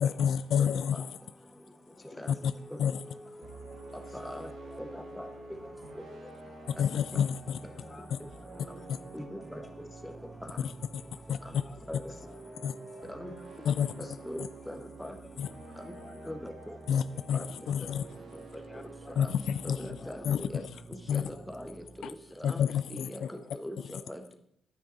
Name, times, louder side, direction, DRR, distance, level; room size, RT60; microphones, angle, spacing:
voice 1, 0.0-1.0 2.4-2.5 2.8-3.0 6.8-7.6 8.1-8.2 8.9-9.0 10.6-10.7 11.3-11.4 12.6-12.7 13.7-13.9 14.4-14.5 15.4-15.5 16.9-18.0 19.2-19.8 20.2-20.6 21.1-21.3 22.0-22.1 22.4-23.3, left 8 dB, 70° left, 15 dB, 0.3 m, -29 dB
voice 2, 1.9-3.5 4.1-5.7 6.2-6.3 6.8-7.0 7.3-9.2 9.6-10.2 10.9-11.0 11.3-12.7 13.2-13.7 14.0-14.9 15.1-15.3 15.7-16.9 17.3-20.3 21.3-21.7 23.3-23.5, left 3 dB, 30° left, 9 dB, 0.7 m, -56 dB
Wind instrument woodwind instrument, 2.2-6.4, equal, 15° right, 1.6 m, -49 dB
sound 1, 3.4-22.6, right 3 dB, 70° right, 2.1 m, -49 dB
voice 3, 4.1-4.5 4.8-5.3 9.1-9.6 10.0-10.1 11.9-12.1 13.0-13.3 14.0-15.1 16.3-16.5 17.3-17.4 19.2-19.3 19.6-20.2 20.5-20.6 21.1-22.1 22.4-22.6 22.9-23.2 23.6-24.3, equal, 5° left, 4 dB, 1.2 m, -41 dB
9.7 x 8.8 x 4.0 m, 0.70 s
cardioid pair, 105°, 0 cm